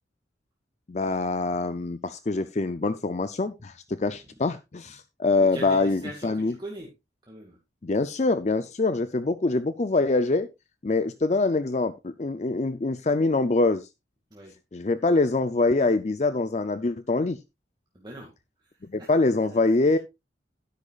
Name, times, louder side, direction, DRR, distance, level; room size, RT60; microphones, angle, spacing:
voice 1, 0.9-6.5 7.8-10.5 10.8-13.9 14.7-17.4 18.8-20.0, left 3 dB, 35° left, 12 dB, 0.5 m, -24 dB
voice 2, 5.5-6.9 7.3-7.6 14.3-14.5 17.9-18.3 18.6-18.7 19.0-19.2 19.5-20.0, right 1 dB, 25° right, -1 dB, 2.1 m, -42 dB
12.0 x 10.5 x 2.4 m, 0.23 s
head